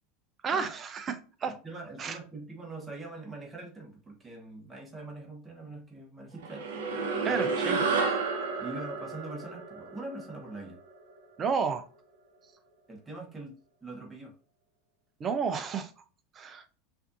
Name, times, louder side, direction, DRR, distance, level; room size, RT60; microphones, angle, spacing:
voice 1, 0.4-1.6 2.0-2.2 7.2-8.1 11.4-11.8 15.2-15.9 16.3-16.6, right 6 dB, 35° right, 0.7 m, -31 dB
voice 2, 1.5-7.1 8.6-10.8 12.9-14.3, right 2 dB, 15° right, 1.3 m, -43 dB
sound 1, 6.4-11.1, right 4 dB, 70° right, 0.9 m, -31 dB
5.7 x 2.7 x 2.6 m
hypercardioid pair, 85°, 0 cm